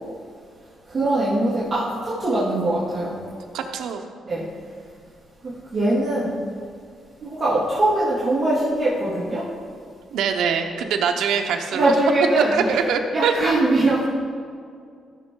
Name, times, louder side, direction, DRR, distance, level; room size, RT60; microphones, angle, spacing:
voice 1, 0.9-3.2 4.2-4.5 5.4-6.4 7.2-9.5 11.7-12.8 13.1-14.0, right 1 dB, 25° right, -10 dB, 2.4 m, -22 dB
voice 2, 3.5-4.0 10.1-11.9 12.5-13.4, right 6 dB, 85° right, 4 dB, 0.8 m, -23 dB
14.5 x 6.4 x 3.8 m, 2.2 s
cardioid pair, 125°, 0 cm